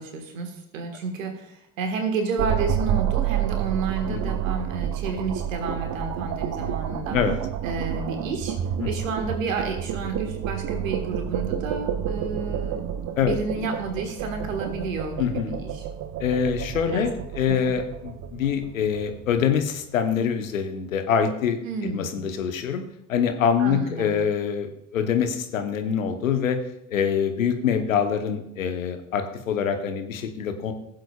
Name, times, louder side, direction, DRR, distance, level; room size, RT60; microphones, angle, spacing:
voice 1, 0.0-7.2 7.6-8.6 8.8-12.8 13.2-15.9 16.9-17.1 17.5-17.6 21.7-22.1 23.6-24.1, right 4 dB, 80° right, 5 dB, 1.6 m, -31 dB
sound 1, 2.4-19.6, right 9 dB, 50° right, 0.8 m, -30 dB
voice 2, 4.1-4.5 7.1-7.4 8.8-8.9 13.2-13.4 15.2-15.6 16.2-22.8 23.1-26.6 26.9-30.7, left 7 dB, 85° left, 7 dB, 1.0 m, -25 dB
15.5 x 7.7 x 2.3 m, 0.82 s
hypercardioid pair, 60°, 39 cm